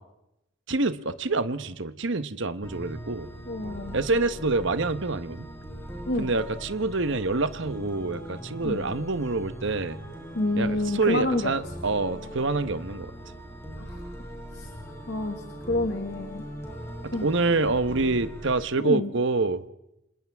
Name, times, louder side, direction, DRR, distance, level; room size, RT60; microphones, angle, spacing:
voice 1, 0.7-3.3 3.9-5.5 6.2-10.0 10.6-13.1 17.0-19.7, right 3 dB, 60° right, 11 dB, 1.1 m, -26 dB
sound 1, 2.6-18.6, equal, 15° left, 5.4 m, -40 dB
voice 2, 3.5-4.0 6.1-6.3 8.6-8.9 10.4-11.5 13.8-14.1 14.5-14.7 15.1-16.4 17.1-17.3 18.8-19.1, left 2 dB, 55° left, 4 dB, 1.8 m, -29 dB
29.0 x 27.5 x 3.6 m, 0.86 s
head